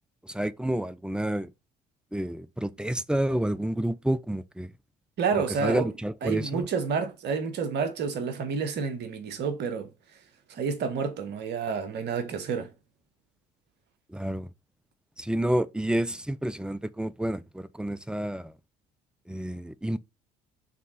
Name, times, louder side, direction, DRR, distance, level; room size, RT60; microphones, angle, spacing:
voice 1, 0.2-1.5 2.1-4.7 5.3-6.7 14.1-14.5 15.2-18.5 19.3-20.0, right 1 dB, 5° right, 0.6 m, -29 dB
voice 2, 5.2-5.9 6.2-9.9 10.5-12.7, right 5 dB, 55° right, 1.5 m, -29 dB
5.8 x 3.6 x 5.7 m
hypercardioid pair, 60°, 20 cm